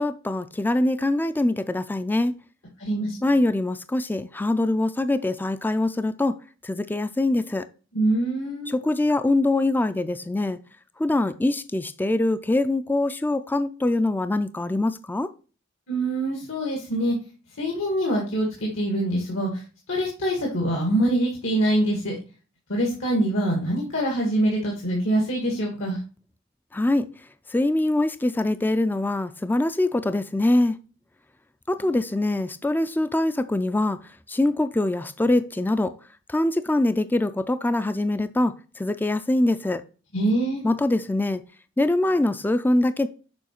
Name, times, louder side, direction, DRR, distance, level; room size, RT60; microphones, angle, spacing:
voice 1, 0.0-2.3 3.2-6.4 6.6-7.7 8.7-10.6 11.0-15.3 26.7-27.1 27.5-30.8 31.7-34.0 34.3-35.9 36.3-39.8 40.6-41.4 41.8-43.1, left 2 dB, 10° left, 0.3 m, -23 dB
voice 2, 2.8-3.2 7.9-8.7 15.9-17.2 17.6-19.5 19.9-22.2 22.7-26.0 40.1-40.6, right 1 dB, 75° left, 1.8 m, -24 dB
7.0 x 4.8 x 4.4 m
head